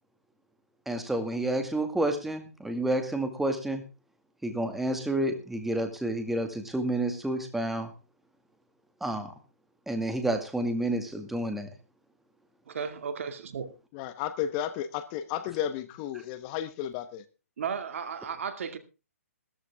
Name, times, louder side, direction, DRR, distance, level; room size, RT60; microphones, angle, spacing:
voice 1, 0.9-3.8 4.4-7.9 9.0-9.3 9.9-11.7, right 1 dB, 5° right, 2.1 m, -29 dB
voice 2, 12.7-13.7 17.6-18.8, right 6 dB, 60° right, 2.3 m, -34 dB
voice 3, 13.9-17.2, left 10 dB, 30° left, 1.1 m, -33 dB
15.0 x 14.0 x 3.6 m
hypercardioid pair, 145°, 8 cm